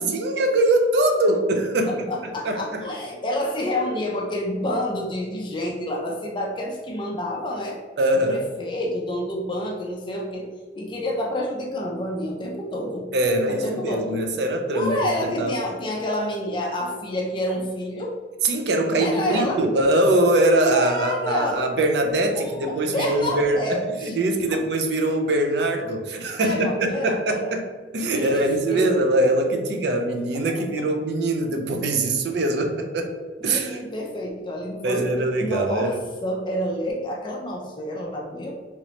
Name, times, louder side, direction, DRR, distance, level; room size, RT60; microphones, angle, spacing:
voice 1, 0.0-2.1 2.4-2.8 8.0-8.4 13.1-14.9 15.4-15.5 18.4-27.7 27.9-33.1 33.4-33.8 34.8-36.0, right 1 dB, 60° right, 4 dB, 0.4 m, -22 dB
voice 2, 1.9-7.8 8.2-10.5 10.8-13.1 13.5-14.3 14.7-18.2 19.0-19.6 20.7-21.6 22.3-24.2 24.5-24.6 26.4-27.5 28.1-28.4 28.7-29.2 30.8-30.9 33.4-35.1 35.4-38.5, left 1 dB, 25° left, -1 dB, 0.4 m, -28 dB
2.9 x 2.8 x 3.0 m, 1.5 s
head